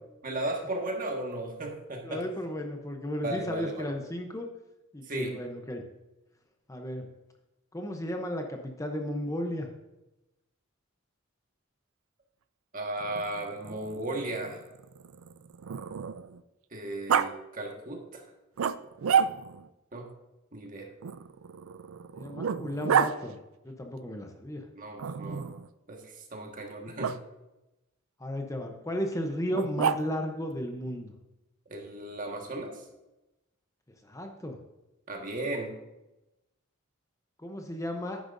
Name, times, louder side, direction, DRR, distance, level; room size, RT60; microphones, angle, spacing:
voice 1, 0.2-2.2 3.2-3.9 5.0-5.4 12.7-14.6 16.7-18.3 19.9-20.1 20.5-20.9 24.7-25.5 25.9-27.1 31.7-32.8 35.1-35.8, right 1 dB, 40° right, 2 dB, 1.5 m, -35 dB
voice 2, 2.0-4.5 4.9-5.8 6.7-7.1 7.7-9.7 22.1-23.4 23.6-24.6 28.2-31.1 34.0-34.6 37.4-38.2, equal, 15° left, 3 dB, 0.7 m, -34 dB
Growling, 13.0-16.4 17.1-17.3 18.6-19.7 21.0-23.1 25.0-25.7 27.0-27.2 29.5-30.3, right 7 dB, 80° right, 0.4 m, -30 dB
10.0 x 9.9 x 2.6 m, 0.98 s
head